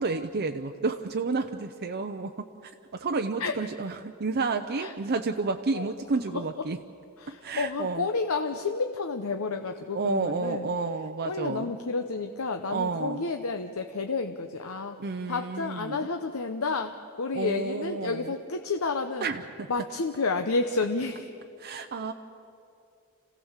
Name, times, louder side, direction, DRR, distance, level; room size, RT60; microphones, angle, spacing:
voice 1, 0.0-6.8 7.3-8.1 9.9-11.7 12.7-13.3 15.0-16.1 17.3-18.3 19.2-19.7 21.6-22.1, right 3 dB, 50° right, 6 dB, 0.6 m, -31 dB
voice 2, 7.2-10.7 11.3-15.0 15.3-19.3 19.7-21.4, left 3 dB, 70° left, 6 dB, 0.8 m, -30 dB
27.0 x 16.5 x 7.3 m, 2.6 s
head